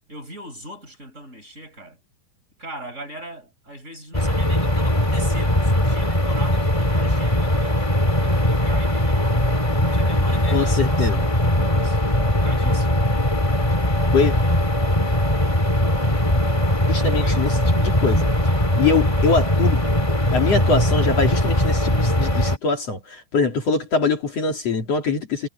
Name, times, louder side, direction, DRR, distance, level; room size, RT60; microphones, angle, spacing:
voice 1, 0.0-2.0 2.6-7.8 8.2-9.3 9.7-12.9 14.0-14.1 17.1-17.5 18.4-19.2, right 1 dB, 20° right, 6.5 m, -40 dB
sound 1, 4.1-22.6, left 1 dB, 10° left, 2.4 m, -20 dB
voice 2, 10.5-11.2 14.1-14.3 16.9-17.5 17.8-18.3 18.8-19.8 20.3-25.5, left 4 dB, 55° left, 3.6 m, -23 dB
omnidirectional pair, 3.6 m